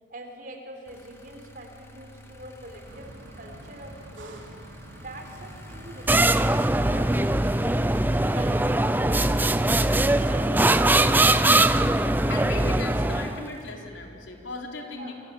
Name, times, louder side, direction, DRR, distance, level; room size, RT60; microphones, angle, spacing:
voice 1, 0.1-4.5 5.0-7.9 8.3-11.3 14.9-15.1, right 1 dB, 45° right, 4 dB, 4.0 m, -44 dB
sound 1, 0.8-13.7, left 1 dB, 15° left, 2.7 m, -47 dB
sound 2, 2.9-11.5, equal, 90° right, 3.7 m, -45 dB
sound 3, 6.1-13.5, right 2 dB, 10° right, 0.6 m, -21 dB
voice 2, 12.3-15.1, left 2 dB, 90° left, 1 dB, 4.3 m, -36 dB
28.0 x 24.5 x 8.6 m, 2.5 s
head